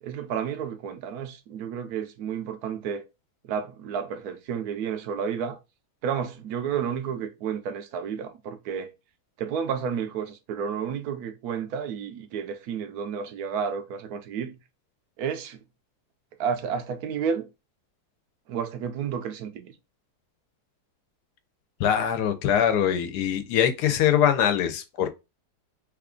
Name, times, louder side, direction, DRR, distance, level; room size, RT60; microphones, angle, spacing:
voice 1, 0.0-3.1 3.4-5.6 6.0-8.9 9.4-14.6 15.2-15.6 16.4-17.5 18.5-19.7, right 7 dB, 75° right, 1.1 m, -31 dB
voice 2, 21.8-25.1, left 9 dB, 85° left, 1.2 m, -23 dB
3.2 x 2.4 x 3.6 m
omnidirectional pair, 1.7 m